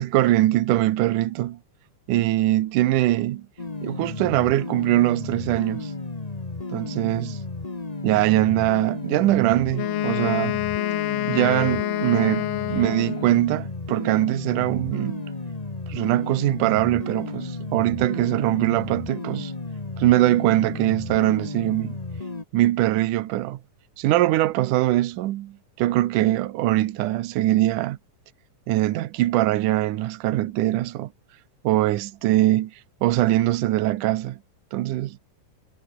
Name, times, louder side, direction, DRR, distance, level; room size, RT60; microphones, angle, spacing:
voice 1, 0.0-1.6 2.1-3.5 3.8-5.9 6.7-7.4 8.0-10.6 11.3-15.3 15.9-19.5 20.0-22.0 22.5-23.6 24.0-28.0 28.7-31.1 31.6-32.7 33.0-34.4 34.7-35.2, right 15 dB, 75° right, 2.5 m, -22 dB
sound 1, 3.6-22.4, left 3 dB, 25° left, 0.8 m, -33 dB
Wind instrument woodwind instrument, 9.7-13.5, left 16 dB, 85° left, 2.5 m, -27 dB
omnidirectional pair, 3.8 m